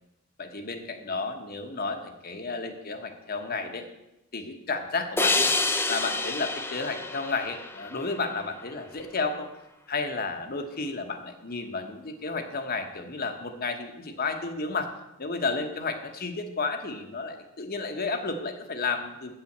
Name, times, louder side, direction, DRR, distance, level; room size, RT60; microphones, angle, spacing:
voice 1, 0.4-3.9 4.3-5.5 5.9-9.5 9.9-14.9 15.2-19.3, left 4 dB, 45° left, 6 dB, 1.1 m, -32 dB
sound 1, 5.2-8.5, left 3 dB, 10° left, 0.6 m, -28 dB
9.0 x 5.8 x 7.9 m, 0.92 s
head